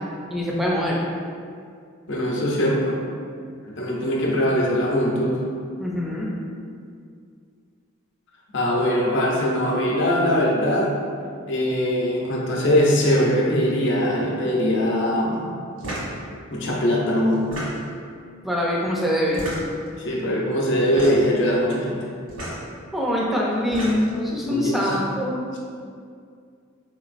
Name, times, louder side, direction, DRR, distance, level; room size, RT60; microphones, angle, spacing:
voice 1, 0.3-1.0 5.8-6.3 18.4-19.5 22.9-25.4, equal, ahead, -4 dB, 0.5 m, -24 dB
voice 2, 2.1-3.0 3.6-5.4 8.5-10.9 11.5-15.5 16.5-17.5 20.0-22.0 24.3-24.9, equal, 60° left, -3 dB, 0.7 m, -21 dB
sound 1, 15.8-16.1 17.3-18.0 19.3-19.9 20.9-21.3 22.3-22.6 23.5-24.2, equal, 80° right, 1.5 m, -32 dB
4.6 x 3.0 x 2.5 m, 2.2 s
head